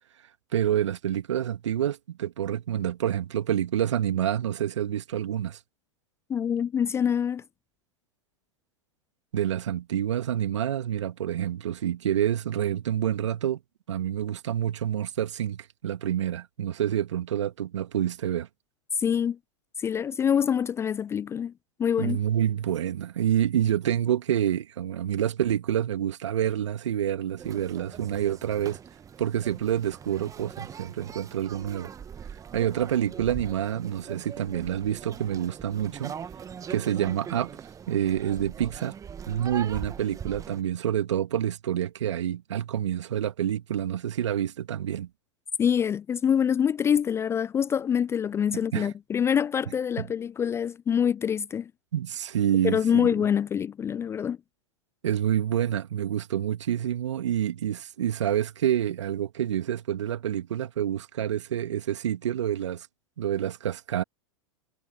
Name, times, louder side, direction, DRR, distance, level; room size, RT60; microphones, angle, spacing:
voice 1, 0.5-5.6 9.3-13.6 13.9-18.5 22.0-28.8 29.2-31.9 32.5-36.1 36.7-37.5 37.9-38.9 39.3-45.1 48.5-48.9 50.0-50.1 51.9-53.1 55.0-62.9 63.2-64.0, right 10 dB, 70° right, 2.2 m, -28 dB
voice 2, 6.3-7.4 19.0-19.4 19.8-21.5 21.8-22.2 45.6-51.7 52.6-54.4, left 8 dB, 15° left, 0.4 m, -25 dB
sound 1, 27.4-40.6, right 7 dB, 20° right, 1.6 m, -41 dB
figure-of-eight pair, 95°, 16 cm